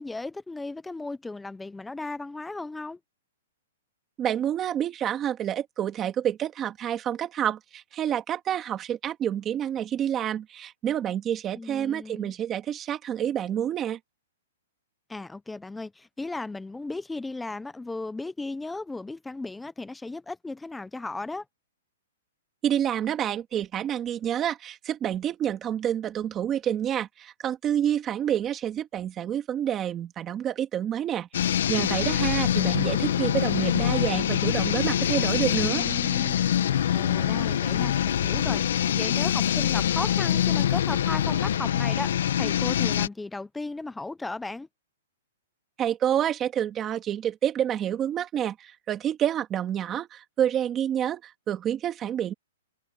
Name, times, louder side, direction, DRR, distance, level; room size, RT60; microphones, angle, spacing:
voice 1, 0.0-3.0 11.5-12.3 15.1-21.4 35.3-36.4 36.9-44.7, left 3 dB, 5° left, 0.7 m, -36 dB
voice 2, 4.2-14.0 22.6-35.9 45.8-52.3, right 10 dB, 15° right, 2.0 m, -28 dB
sound 1, 31.3-43.1, left 10 dB, 65° left, 1.3 m, -25 dB
hypercardioid pair, 165°, 0 cm